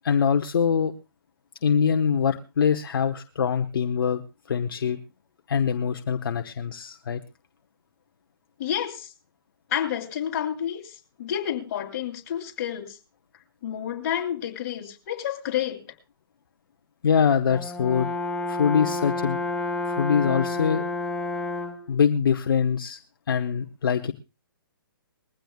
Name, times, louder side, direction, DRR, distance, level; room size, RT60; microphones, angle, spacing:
voice 1, 0.0-0.9 1.6-4.2 4.5-5.0 5.5-7.2 17.0-18.1 18.5-19.4 19.9-20.8 21.9-23.0 23.3-24.1, left 7 dB, 65° left, 1.0 m, -23 dB
voice 2, 8.6-9.1 9.7-13.0 13.6-15.9, left 10 dB, 40° left, 3.1 m, -30 dB
Brass instrument, 17.5-21.9, left 2 dB, 5° left, 1.0 m, -29 dB
21.5 x 16.0 x 2.4 m
hypercardioid pair, 145°, 12 cm